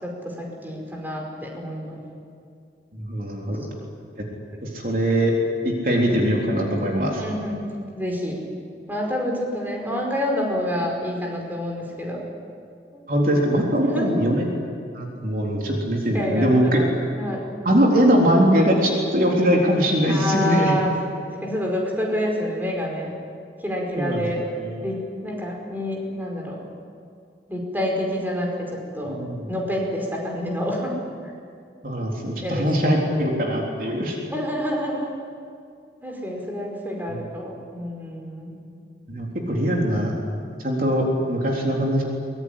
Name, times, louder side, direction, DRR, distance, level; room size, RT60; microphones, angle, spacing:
voice 1, 0.0-2.0 3.5-3.7 7.2-7.6 7.9-8.4 8.9-12.2 12.9-13.0 13.8-14.1 16.1-16.9 17.2-17.5 20.1-20.9 21.4-23.1 23.6-24.4 24.8-26.6 27.5-29.2 29.5-31.0 32.4-32.9 34.3-35.1 36.0-38.6, equal, 10° right, -1 dB, 5.0 m, -28 dB
voice 2, 3.0-3.7 4.8-5.3 5.6-7.2 13.1-14.5 14.9-16.8 17.6-20.8 24.0-24.2 24.6-24.9 29.0-29.4 31.8-34.2 37.1-37.2 39.1-40.1 40.6-42.0, equal, 50° right, -1 dB, 3.9 m, -21 dB
23.5 x 21.5 x 10.0 m, 2.3 s
head